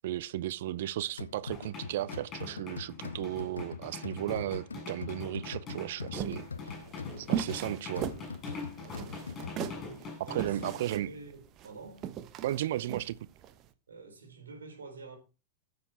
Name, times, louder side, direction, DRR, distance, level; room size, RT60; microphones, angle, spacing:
voice 1, 0.0-6.5 7.2-8.1 10.2-11.1 12.4-13.2, right 13 dB, 55° right, 0.6 m, -35 dB
sound 1, 1.2-10.1, left 5 dB, 75° left, 0.8 m, -43 dB
sound 2, 1.5-10.7, left 3 dB, 25° left, 7.7 m, -44 dB
sound 3, 6.1-13.6, right 9 dB, 35° right, 1.1 m, -38 dB
voice 2, 6.8-7.9 8.8-12.1 13.9-15.2, right 3 dB, 70° right, 4.3 m, -49 dB
14.0 x 7.0 x 4.4 m
figure-of-eight pair, 90°, 0 cm